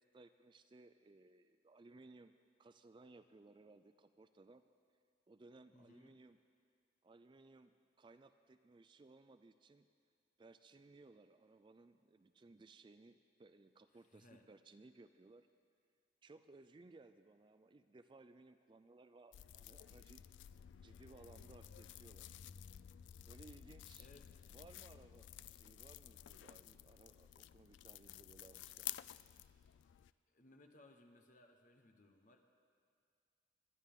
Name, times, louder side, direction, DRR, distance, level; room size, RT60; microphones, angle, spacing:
voice 1, 0.0-2.3 2.6-4.6 5.3-6.4 7.0-9.9 10.4-15.5 16.2-20.3 20.8-22.3 23.2-24.1 24.5-29.0, right 3 dB, 25° right, 10 dB, 0.3 m, -62 dB
voice 2, 5.7-6.2 13.9-14.5 24.0-24.3 30.3-32.4, left 2 dB, 45° left, 4 dB, 1.1 m, -64 dB
sound 1, 19.3-30.1, left 12 dB, 85° left, 0.3 m, -53 dB
23.5 x 11.0 x 3.7 m, 2.2 s
head